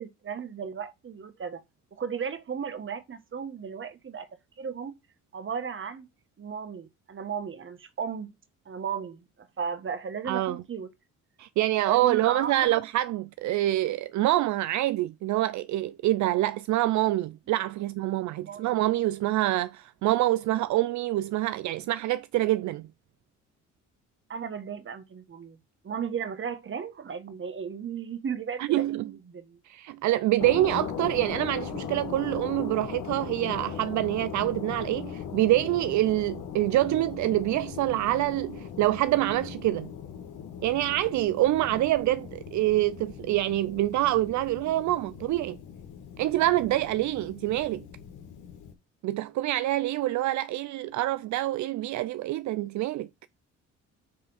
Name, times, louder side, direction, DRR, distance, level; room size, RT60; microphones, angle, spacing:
voice 1, 0.0-1.6 1.9-4.3 4.6-5.0 5.3-6.1 6.4-8.3 8.6-10.9 11.8-12.6 18.4-18.8 24.3-25.6 25.8-29.6, right 7 dB, 40° right, 1.5 m, -35 dB
voice 2, 10.3-10.6 11.4-22.9 28.6-29.1 29.6-39.9 40.6-45.6 46.2-47.9 49.0-53.1, right 15 dB, 70° right, 0.5 m, -26 dB
sound 1, 30.4-48.7, left 8 dB, 85° left, 2.1 m, -39 dB
7.6 x 3.4 x 6.3 m
cardioid pair, 90°, 30 cm